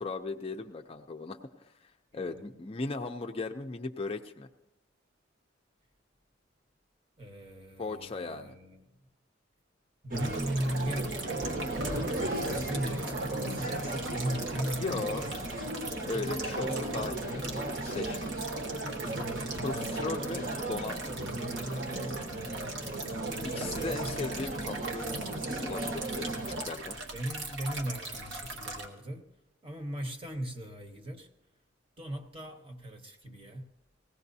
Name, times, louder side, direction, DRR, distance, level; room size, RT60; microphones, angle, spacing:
voice 1, 0.0-4.5 7.8-8.6 12.4-12.6 14.7-15.3 16.0-18.3 19.6-21.2 23.4-25.1 25.6-27.0, left 3 dB, 30° left, 5 dB, 0.4 m, -38 dB
voice 2, 2.1-2.5 7.2-8.8 10.0-11.6 12.2-15.6 23.9-24.3 27.1-29.2 29.6-31.3 32.0-33.7, right 1 dB, 25° right, 5 dB, 1.1 m, -38 dB
sound 1, 10.1-26.6, right 2 dB, 45° right, 1.3 m, -35 dB
sound 2, 10.1-28.9, right 2 dB, 70° right, 1.5 m, -41 dB
20.5 x 16.5 x 2.7 m, 0.94 s
head